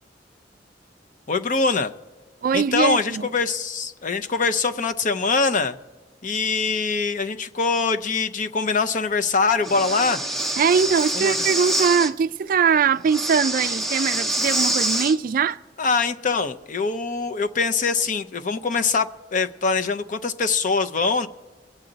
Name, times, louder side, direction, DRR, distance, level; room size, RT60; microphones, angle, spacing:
voice 1, 1.3-1.9 2.5-5.8 6.2-10.2 11.1-11.3 15.8-21.3, left 4 dB, 45° left, 0.6 m, -23 dB
voice 2, 2.4-3.3 10.6-15.6, right 6 dB, 50° right, 0.3 m, -21 dB
Breathing, 9.6-12.1 13.1-15.2, right 1 dB, ahead, 0.7 m, -25 dB
22.5 x 8.7 x 3.9 m
head